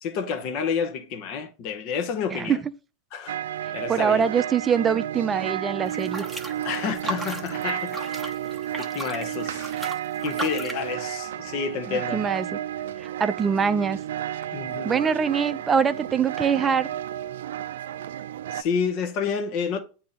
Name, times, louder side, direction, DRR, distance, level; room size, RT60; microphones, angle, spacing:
voice 1, 0.0-2.6 3.1-3.4 3.7-4.2 6.6-8.3 8.8-9.7 10.2-12.2 14.5-15.1 18.5-19.8, left 6 dB, 50° left, 0.9 m, -29 dB
sound 1, 3.3-18.6, right 11 dB, 80° right, 0.3 m, -32 dB
voice 2, 3.9-6.3 11.9-12.6 13.0-14.0 14.8-16.9, right 6 dB, 20° right, 0.5 m, -23 dB
sound 2, 5.9-10.9, right 2 dB, 5° right, 1.0 m, -36 dB
8.4 x 2.9 x 4.0 m
hypercardioid pair, 120°, 0 cm